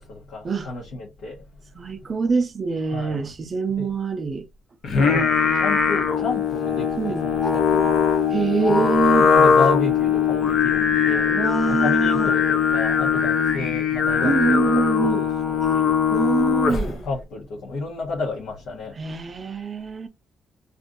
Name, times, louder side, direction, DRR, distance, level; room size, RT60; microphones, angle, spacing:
voice 1, 0.0-1.4 2.9-3.2 3.8-3.9 5.0-7.9 8.6-9.0 9.3-11.3 11.8-16.0 16.8-19.0, left 3 dB, 90° left, 1.0 m, -32 dB
voice 2, 1.8-4.5 7.0-7.3 8.3-9.3 11.3-12.3 14.2-15.3 16.1-17.0 19.0-20.1, right 4 dB, 30° right, 0.5 m, -24 dB
Singing, 4.8-17.0, left 6 dB, 50° left, 0.6 m, -20 dB
2.5 x 2.4 x 3.6 m
cardioid pair, 180°, 0 cm